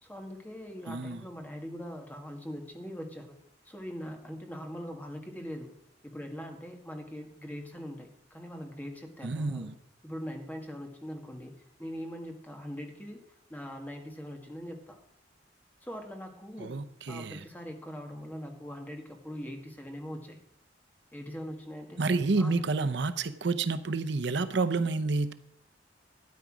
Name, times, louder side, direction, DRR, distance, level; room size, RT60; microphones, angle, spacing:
voice 1, 0.0-3.4 3.6-5.7 6.0-9.7 10.0-11.5 11.8-13.2 13.5-15.0 15.8-16.7 17.1-20.4 21.1-22.0 22.4-22.6, equal, 10° left, 3 dB, 1.8 m, -41 dB
voice 2, 0.9-1.2 9.2-9.7 16.6-17.4 22.0-25.3, right 3 dB, 65° right, 12 dB, 0.7 m, -29 dB
13.0 x 9.8 x 6.1 m, 0.72 s
head